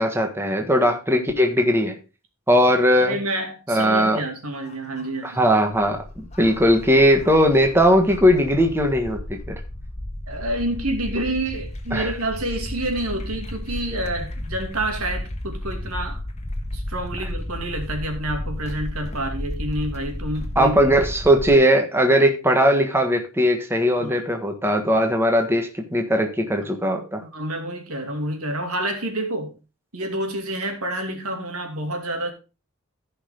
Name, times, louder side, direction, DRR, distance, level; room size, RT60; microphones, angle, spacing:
voice 1, 0.0-2.0 2.5-3.2 3.7-4.2 5.2-9.5 11.9-12.1 20.6-27.2, equal, 10° right, 1.4 m, -19 dB
voice 2, 3.0-5.4 10.3-16.2 16.7-20.9 24.0-24.2 27.2-29.6 29.9-32.3, right 1 dB, 80° right, 2.6 m, -28 dB
sound 1, 4.6-21.5, left 1 dB, 30° left, 1.4 m, -33 dB
14.5 x 5.7 x 3.8 m
head